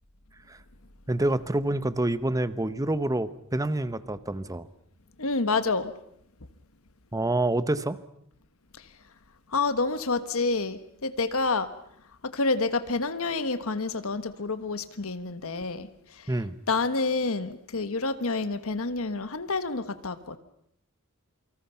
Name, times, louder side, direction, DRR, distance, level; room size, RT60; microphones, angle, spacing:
voice 1, 1.1-4.7 7.1-8.0 16.3-16.6, right 1 dB, 15° right, 14 dB, 0.9 m, -27 dB
voice 2, 5.2-5.9 9.5-11.7 12.3-15.9 16.7-20.4, left 3 dB, 70° left, 11 dB, 1.4 m, -28 dB
28.0 x 25.0 x 5.7 m, 0.73 s
head